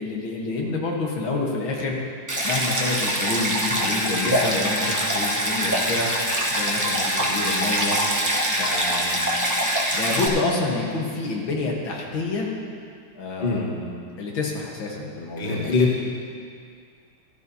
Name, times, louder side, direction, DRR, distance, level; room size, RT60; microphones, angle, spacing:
voice 1, 0.0-2.0 2.4-6.1 6.5-8.0 8.5-9.2 9.9-12.5 13.1-15.7, left 3 dB, 80° left, -1 dB, 2.1 m, -28 dB
Stream, 2.3-10.3, equal, 15° right, 0.6 m, -24 dB
Trumpet, 3.8-10.5, left 3 dB, 55° left, 1.2 m, -37 dB
voice 2, 15.4-16.0, left 4 dB, 30° left, -3 dB, 1.5 m, -22 dB
14.5 x 12.5 x 2.8 m, 2.3 s
omnidirectional pair, 2.1 m